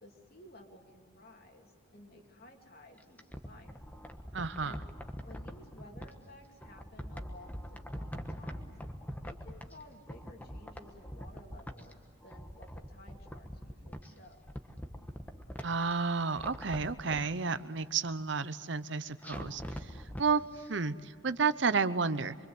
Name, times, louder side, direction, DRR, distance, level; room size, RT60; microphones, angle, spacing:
voice 1, 0.0-3.8 4.6-4.8 5.2-8.7 9.2-14.4, left 1 dB, 45° left, 3 dB, 2.7 m, -55 dB
sound 1, 3.0-6.1 6.6-9.8 10.1-11.9 12.2-14.1 14.4-15.9 16.3-17.3 19.2-20.3 20.6-20.7, equal, 10° left, 1.2 m, -43 dB
voice 2, 4.3-4.7 15.6-19.9 20.2-20.4 20.7-22.3, right 4 dB, 65° right, 14 dB, 0.8 m, -31 dB
24.5 x 24.5 x 7.9 m, 2.1 s
head